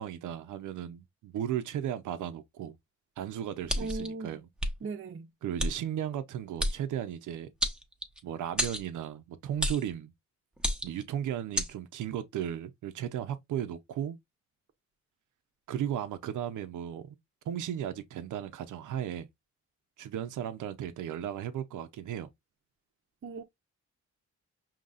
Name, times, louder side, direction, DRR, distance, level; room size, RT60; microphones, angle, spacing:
voice 1, 0.0-2.8 3.2-4.4 5.4-7.5 8.2-10.1 10.8-14.2 15.7-17.2 17.4-19.3 20.0-22.3, right 10 dB, 90° right, 0.7 m, -35 dB
sound 1, 3.7-4.1 4.6-4.7 5.6-5.7 6.6-6.8 7.6-8.2 8.6-8.9 9.6-9.9 10.6-11.0 11.6-11.7, equal, 5° right, 0.8 m, -30 dB
voice 2, 3.8-4.4 4.8-5.3 23.2-23.4, right 3 dB, 45° right, 0.7 m, -38 dB
5.6 x 2.9 x 2.4 m
cardioid pair, 120°, 30 cm